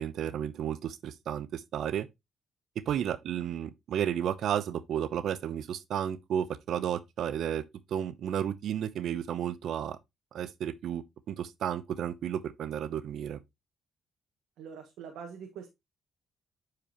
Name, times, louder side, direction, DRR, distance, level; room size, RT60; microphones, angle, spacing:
voice 1, 0.0-2.1 2.9-7.6 7.9-10.0 10.3-13.4, right 9 dB, 70° right, 0.8 m, -32 dB
voice 2, 14.6-15.7, right 7 dB, 85° right, 1.5 m, -44 dB
8.6 x 4.9 x 3.0 m
cardioid pair, 90°, 0 cm